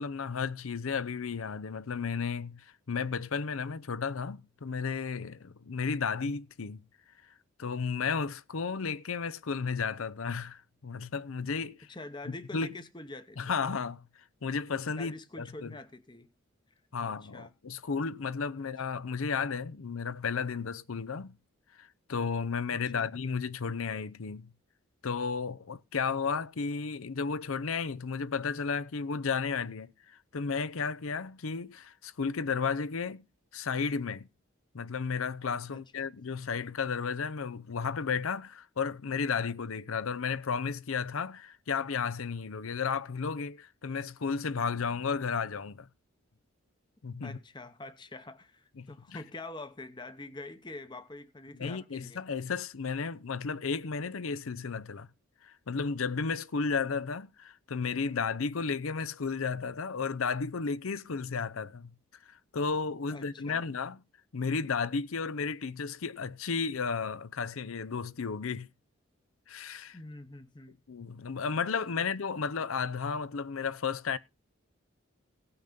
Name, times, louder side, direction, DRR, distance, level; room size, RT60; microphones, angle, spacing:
voice 1, 0.0-6.8 7.6-11.9 12.3-12.7 13.4-14.1 14.4-15.8 16.9-21.3 21.8-24.5 25.0-33.2 33.5-34.3 34.7-45.9 47.0-47.4 48.8-49.2 51.6-55.1 55.4-61.9 62.3-64.0 64.3-68.7 69.5-70.0 70.9-74.2, left 5 dB, 75° left, 0.6 m, -33 dB
voice 2, 11.9-13.5 15.0-16.3 17.0-17.5 22.8-23.1 35.7-36.1 47.2-52.2 63.1-63.6 69.9-70.8, left 2 dB, 20° left, 0.8 m, -45 dB
17.0 x 5.9 x 5.2 m
head